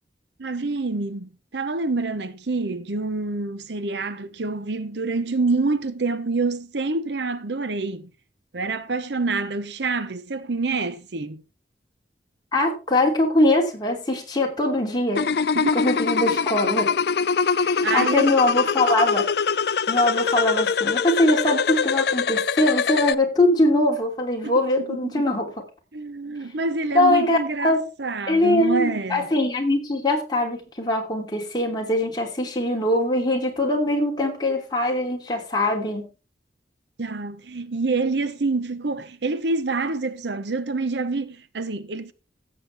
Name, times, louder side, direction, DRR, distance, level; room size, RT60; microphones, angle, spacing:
voice 1, 0.4-8.1 8.5-11.4 15.5-15.7 17.8-18.3 24.4-25.3 25.9-29.3 37.0-42.1, right 3 dB, 75° right, 0.9 m, -27 dB
voice 2, 12.5-15.3 15.7-16.9 17.6-19.2 19.9-25.5 26.9-27.8 28.3-36.1, left 1 dB, 25° left, 2.9 m, -22 dB
sound 1, 15.2-23.1, left 6 dB, 65° left, 0.5 m, -23 dB
16.0 x 7.7 x 3.4 m
head